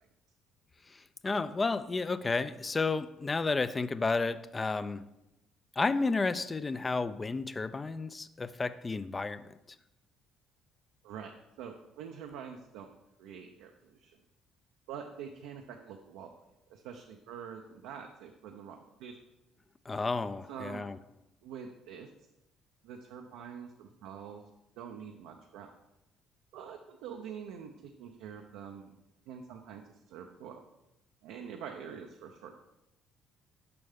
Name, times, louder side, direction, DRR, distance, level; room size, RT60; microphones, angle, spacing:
voice 1, 0.9-5.0 5.8-9.5 19.9-21.0, left 3 dB, 25° left, 14 dB, 0.4 m, -32 dB
voice 2, 11.0-12.9 13.2-14.2 14.9-16.3 16.7-19.2 20.5-20.9 21.4-22.1 22.8-24.4 24.8-25.7 26.5-28.9 29.3-30.6 31.2-32.7, right 7 dB, 85° right, 3 dB, 0.5 m, -45 dB
6.8 x 5.4 x 3.5 m, 0.90 s
supercardioid pair, 75°, 0 cm